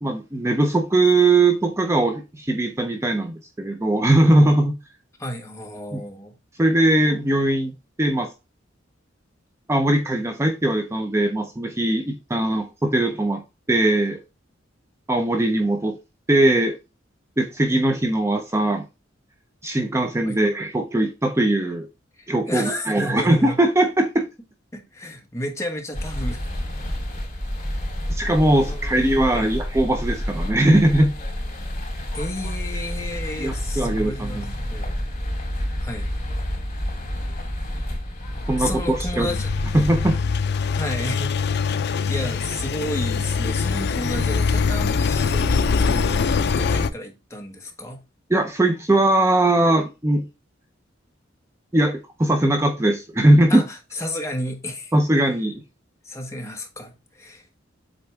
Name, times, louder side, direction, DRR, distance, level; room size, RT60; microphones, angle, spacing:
voice 1, 0.0-4.8 5.9-6.0 6.6-7.7 8.0-8.3 9.7-13.4 13.7-14.2 15.1-15.9 16.3-16.8 17.4-18.8 19.6-21.9 22.3-24.2 28.1-31.1 33.4-34.5 38.5-39.3 39.7-40.2 48.3-50.2 51.7-53.6 54.9-55.6, right 1 dB, 15° right, 0.6 m, -20 dB
voice 2, 5.2-6.3 20.2-20.4 22.2-23.6 24.7-26.4 28.6-29.0 29.3-29.5 32.1-34.9 35.8-36.1 38.6-39.5 40.7-41.7 42.1-46.2 46.4-48.0 53.5-54.9 56.0-57.5, left 1 dB, 15° left, 1.3 m, -32 dB
sound 1, 25.9-40.2, equal, 40° left, 3.8 m, -29 dB
Engine, 39.3-46.9, left 5 dB, 60° left, 0.5 m, -23 dB
7.9 x 3.9 x 3.4 m
head